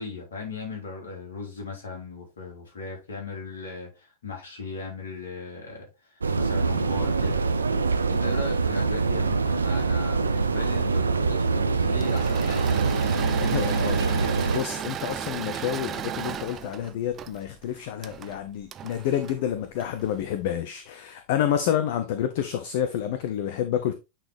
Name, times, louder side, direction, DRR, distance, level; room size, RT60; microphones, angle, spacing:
voice 1, 0.0-7.5 8.1-12.9, left 3 dB, 65° left, 3.2 m, -37 dB
sound 1, 6.2-14.6, right 4 dB, 75° right, 0.6 m, -24 dB
Engine / Mechanisms, 11.8-20.2, right 9 dB, 30° right, 0.5 m, -35 dB
voice 2, 13.4-23.9, left 10 dB, 50° left, 0.7 m, -29 dB
9.0 x 4.1 x 3.4 m
figure-of-eight pair, 90°, 0 cm